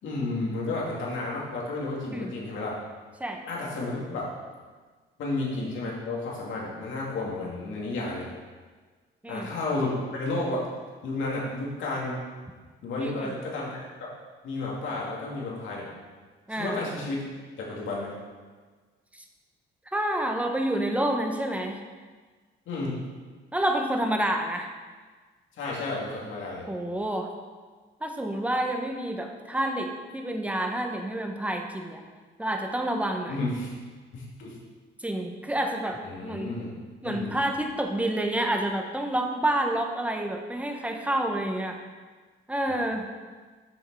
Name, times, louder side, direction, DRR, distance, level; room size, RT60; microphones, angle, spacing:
voice 1, 0.0-2.8 3.5-4.3 5.2-8.3 9.3-10.7 11.0-12.2 12.8-14.1 14.4-15.9 16.6-17.2 17.6-18.1 22.7-23.0 25.6-26.7 33.3-33.7 34.1-34.6 36.0-36.7 37.0-37.3, left 2 dB, 75° left, -4 dB, 2.6 m, -32 dB
voice 2, 13.0-13.3 16.5-16.8 19.1-19.2 19.9-21.8 23.5-24.7 26.7-27.3 28.0-32.0 32.4-33.3 35.0-36.5 37.0-41.8 42.5-43.1, right 1 dB, 5° right, 3 dB, 1.1 m, -28 dB
7.6 x 6.4 x 4.8 m, 1.4 s
cardioid pair, 90°, 20 cm